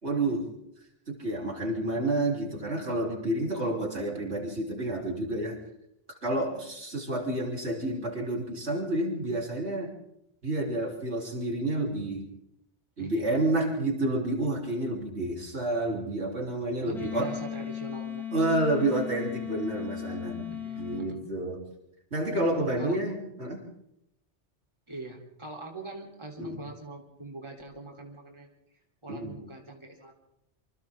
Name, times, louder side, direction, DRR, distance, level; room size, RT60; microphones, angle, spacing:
voice 1, 0.0-0.5 1.1-5.6 6.2-9.9 10.4-12.3 13.0-17.3 18.3-20.5 20.8-21.6 22.1-23.6 26.4-26.6 29.1-29.4, right 2 dB, 65° right, -1 dB, 4.0 m, -29 dB
voice 2, 13.0-13.3 16.8-18.5 20.5-21.4 22.8-23.0 24.9-28.5 29.0-30.1, right 2 dB, 25° right, 0 dB, 3.6 m, -43 dB
Wind instrument woodwind instrument, 16.9-21.1, left 9 dB, ahead, 5.3 m, -37 dB
28.0 x 25.5 x 3.7 m, 0.79 s
omnidirectional pair, 1.2 m